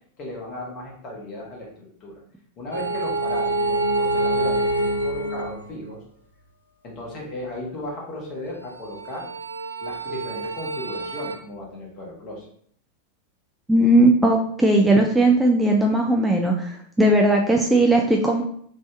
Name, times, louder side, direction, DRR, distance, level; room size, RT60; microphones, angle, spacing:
voice 1, 0.2-2.2 2.6-6.0 6.8-9.3 9.8-12.5, left 1 dB, 35° left, -2 dB, 1.3 m, -35 dB
sound 1, 2.7-5.9 8.8-11.4, right 2 dB, 85° right, 0.4 m, -26 dB
voice 2, 13.7-18.4, right 1 dB, 5° right, 1 dB, 0.4 m, -18 dB
3.3 x 2.6 x 3.4 m, 0.62 s
figure-of-eight pair, 90°, 0 cm